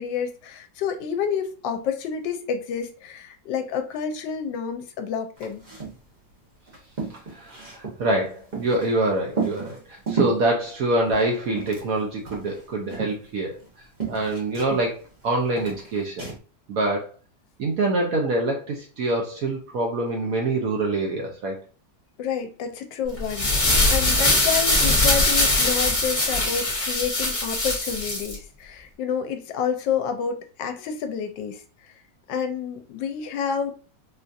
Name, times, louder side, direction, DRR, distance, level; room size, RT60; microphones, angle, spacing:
voice 1, 0.0-5.6 22.2-31.6 32.3-33.7, left 7 dB, 75° left, 7 dB, 1.2 m, -29 dB
sound 1, 5.4-6.0 6.3-6.4 6.7-8.9 9.3-10.5 11.0-12.0 12.3-13.7 14.0-15.2 15.6-16.4, right 5 dB, 50° right, 0.5 m, -32 dB
voice 2, 7.3-13.6 14.1-16.3 16.7-17.2 17.6-21.6, right 2 dB, 65° right, 0 dB, 0.9 m, -25 dB
sound 2, 23.2-28.3, left 2 dB, 25° left, 1.0 m, -21 dB
4.4 x 2.4 x 2.6 m, 0.37 s
omnidirectional pair, 2.0 m